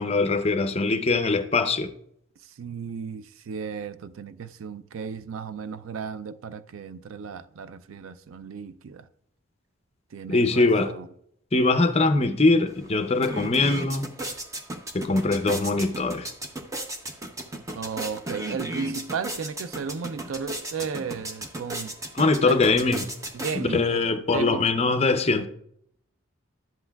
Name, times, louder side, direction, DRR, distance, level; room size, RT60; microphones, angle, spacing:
voice 1, 0.0-1.9 10.3-10.9 11.5-14.1 14.9-16.3 22.1-23.0 23.6-25.5, left 3 dB, 30° left, 0.5 m, -22 dB
voice 2, 2.6-9.1 10.1-11.1 17.7-22.0 22.4-22.6 23.3-24.1 24.3-24.7, right 6 dB, 70° right, 0.4 m, -34 dB
sound 1, 12.7-12.8 13.1-24.0, right 1 dB, 15° right, 0.6 m, -35 dB
11.0 x 7.8 x 2.3 m
head